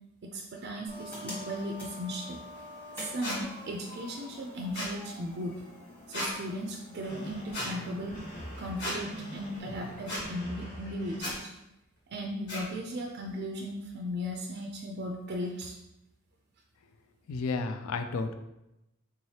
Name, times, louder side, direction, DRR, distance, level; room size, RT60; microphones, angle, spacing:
voice 1, 0.2-2.4 3.0-5.6 6.1-8.2 8.6-11.5 12.1-15.8, equal, 50° right, 1 dB, 0.4 m, -36 dB
sound 1, 0.9-10.1, left 1 dB, 10° left, 1.0 m, -47 dB
sound 2, 3.2-3.4 4.7-4.9 6.1-6.3 7.5-7.7 8.8-9.0 10.1-10.2 11.2-11.3 12.5-12.6, left 1 dB, 55° left, 1.4 m, -34 dB
sound 3, 7.0-11.2, left 1 dB, 40° left, 1.1 m, -44 dB
voice 2, 17.3-18.3, left 4 dB, 75° left, 8 dB, 0.3 m, -32 dB
3.6 x 3.2 x 2.8 m, 0.91 s
head